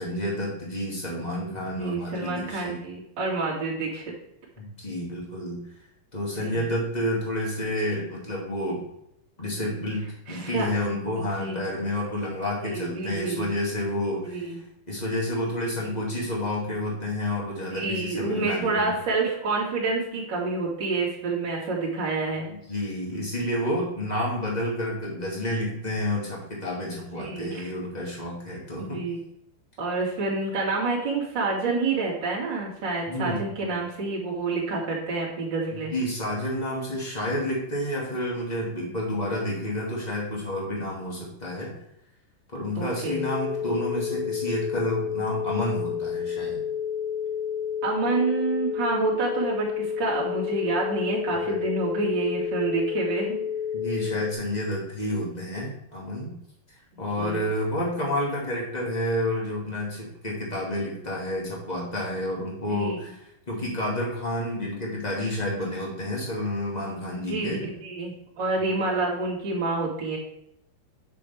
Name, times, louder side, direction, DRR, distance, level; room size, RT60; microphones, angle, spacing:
voice 1, 0.0-2.7 4.6-5.6 6.1-8.8 9.4-14.6 14.9-18.9 22.5-29.0 33.1-33.8 35.7-41.7 42.5-46.6 51.3-51.6 53.7-56.3 57.0-63.2 63.5-67.6, left 1 dB, 15° left, -4 dB, 1.4 m, -30 dB
voice 2, 1.8-4.1 6.4-6.6 10.3-10.7 11.2-11.6 12.6-13.5 14.2-14.6 17.7-22.5 27.1-27.7 28.8-29.2 29.8-35.9 42.8-43.2 47.8-53.4 57.2-57.4 62.7-63.1 67.3-70.2, right 3 dB, 35° right, -5 dB, 2.5 m, -28 dB
sound 1, 43.0-54.3, left 8 dB, 80° left, 2.3 m, -30 dB
8.6 x 6.8 x 3.5 m, 0.79 s
omnidirectional pair, 4.7 m